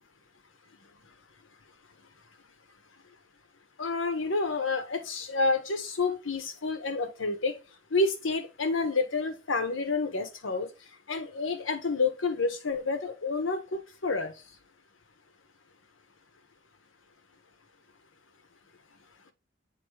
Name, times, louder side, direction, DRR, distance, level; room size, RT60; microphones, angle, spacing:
voice 1, 3.8-7.6 7.9-10.7 11.1-14.3, left 3 dB, 85° left, 1.0 m, -29 dB
7.7 x 2.7 x 4.7 m
head